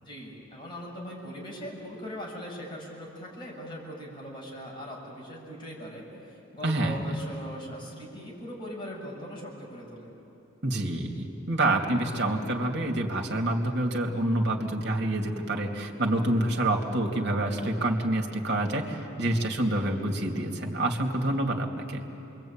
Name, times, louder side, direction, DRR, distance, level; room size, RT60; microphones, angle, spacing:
voice 1, 0.0-10.1, equal, 25° left, -3 dB, 6.6 m, -40 dB
voice 2, 6.6-7.1 10.6-22.1, right 1 dB, 60° right, 2 dB, 2.7 m, -27 dB
28.0 x 23.5 x 8.9 m, 2.8 s
head